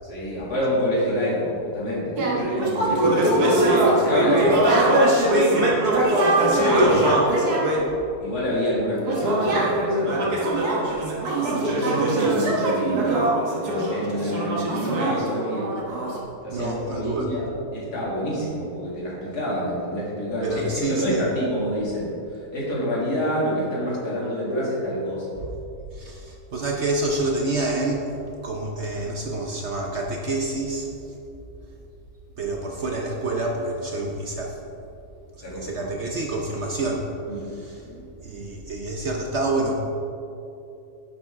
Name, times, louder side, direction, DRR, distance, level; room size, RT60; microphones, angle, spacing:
voice 1, 0.0-2.2 2.5-4.9 5.4-5.7 6.5-7.0 8.2-10.6 11.5-13.2 13.6-15.7 16.4-25.3 35.4-35.9 37.3-37.4 37.8-38.0, equal, 75° left, -7 dB, 3.0 m, -27 dB
sound 1, 2.2-7.9 9.1-16.2, right 1 dB, 70° right, 1.9 m, -21 dB
voice 2, 16.5-17.3 20.4-21.2 25.4-25.5 25.9-28.1 28.4-30.9 32.4-34.6 35.5-37.1 37.4-37.8 38.2-39.7, right 2 dB, 55° right, 0 dB, 0.9 m, -27 dB
10.0 x 7.3 x 3.6 m, 2.8 s
omnidirectional pair, 1.7 m